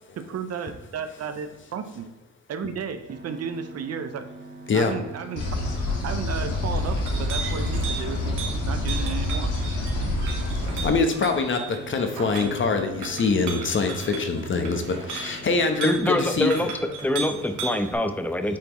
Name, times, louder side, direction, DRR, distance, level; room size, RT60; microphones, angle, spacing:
voice 1, 0.2-2.1 2.5-4.3 4.7-5.4 6.0-9.5, right 6 dB, 55° right, 9 dB, 0.6 m, -33 dB
sound 1, 3.1-16.0, right 2 dB, 35° right, 1.0 m, -44 dB
sound 2, 5.4-10.9, left 1 dB, 80° left, 1.7 m, -27 dB
Chink clink, 6.6-17.9, right 5 dB, 85° right, 1.5 m, -37 dB
voice 2, 10.8-16.5, left 4 dB, 40° left, 6 dB, 1.0 m, -24 dB
voice 3, 15.8-18.6, left 1 dB, 5° left, 7 dB, 0.7 m, -25 dB
8.3 x 4.2 x 3.0 m, 1.1 s
cardioid pair, 90°, 30 cm